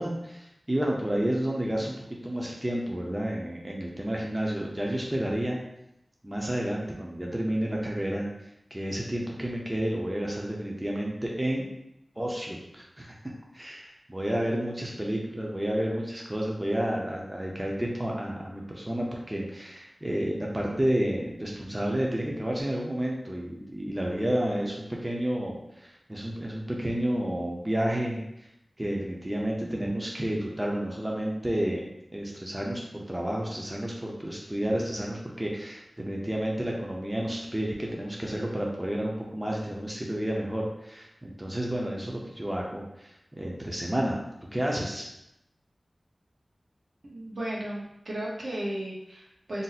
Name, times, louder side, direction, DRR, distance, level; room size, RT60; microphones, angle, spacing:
voice 1, 0.0-1.9 2.2-5.6 6.2-8.3 8.7-11.6 12.2-13.2 13.5-28.5 28.8-31.9 32.1-44.2 44.5-45.1, right 1 dB, 20° right, -2 dB, 0.5 m, -30 dB
voice 2, 47.0-49.6, right 1 dB, 70° right, -5 dB, 0.9 m, -35 dB
2.6 x 2.0 x 3.9 m, 0.82 s
wide cardioid pair, 50°, 0 cm